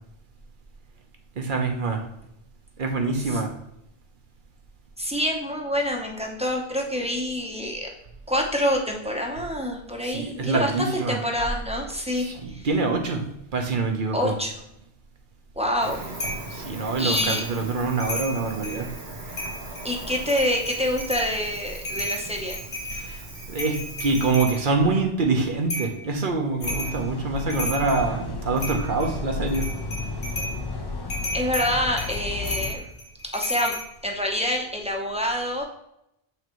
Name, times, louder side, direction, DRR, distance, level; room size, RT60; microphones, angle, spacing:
voice 1, 1.4-2.1 2.8-3.5 10.0-11.2 12.1-13.3 13.5-14.3 16.5-18.9 22.9-29.7, right 3 dB, 55° right, 3 dB, 1.1 m, -25 dB
voice 2, 5.0-7.9 8.3-12.7 14.1-14.5 15.5-16.1 17.0-17.4 19.8-22.6 31.3-32.9 33.3-33.7 34.0-35.6, left 1 dB, 5° right, 0 dB, 0.8 m, -27 dB
Cricket, 15.8-24.3, right 2 dB, 80° right, 1.6 m, -39 dB
sound 1, 16.2-16.5 17.1-17.5 17.9-18.8 19.3-19.8 20.2-21.3 21.7-24.6 25.7-26.0 26.6-27.0 27.4-28.1 28.6-29.1 29.5-30.6 31.1-33.8, left 1 dB, 50° left, 1.9 m, -32 dB
sound 2, 26.6-32.7, left 3 dB, 25° left, 0.6 m, -33 dB
8.4 x 3.9 x 3.1 m, 0.81 s
omnidirectional pair, 1.1 m